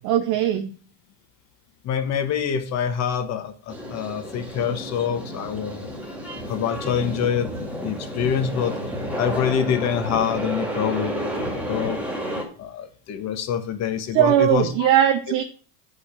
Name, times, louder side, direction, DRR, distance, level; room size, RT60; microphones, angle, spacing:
voice 1, 0.0-0.7 14.1-15.4, right 11 dB, 40° right, 8 dB, 0.8 m, -19 dB
voice 2, 1.8-5.9 6.5-8.7 9.2-12.0 12.6-14.9, left 8 dB, 35° left, 8 dB, 1.3 m, -26 dB
sound 1, 3.7-12.4, equal, 5° right, 2.0 m, -31 dB
8.6 x 5.6 x 6.7 m, 0.40 s
cardioid pair, 160°, 47 cm